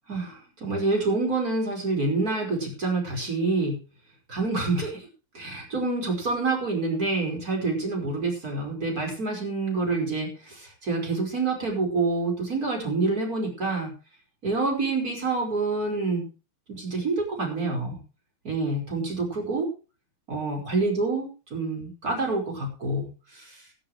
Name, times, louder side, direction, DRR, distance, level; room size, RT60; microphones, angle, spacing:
voice 1, 0.1-3.8 4.3-5.1 5.3-13.9 14.4-16.3 16.7-18.0 18.4-19.7 20.3-23.6, right 3 dB, 40° right, 1 dB, 5.7 m, -27 dB
14.5 x 14.0 x 3.2 m, 0.33 s
omnidirectional pair, 2.3 m